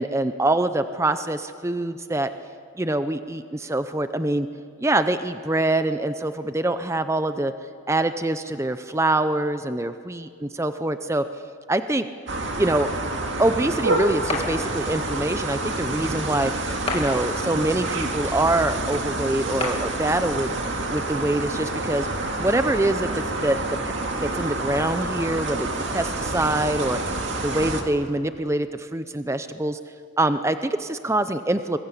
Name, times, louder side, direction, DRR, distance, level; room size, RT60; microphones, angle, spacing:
voice 1, 0.0-2.3 2.8-4.5 4.8-7.5 7.9-11.2 11.7-12.1 12.6-12.9 13.4-16.5 16.9-20.5 20.9-22.1 22.4-23.8 24.2-29.8 30.2-31.8, right 1 dB, 15° right, 10 dB, 0.6 m, -24 dB
sound 1, 12.3-27.8, right 2 dB, 60° right, 2.4 m, -28 dB
sound 2, 14.3-15.4 16.9-18.0 19.6-20.6, left 3 dB, 30° left, 2.4 m, -33 dB
26.0 x 22.0 x 8.3 m, 2.2 s
head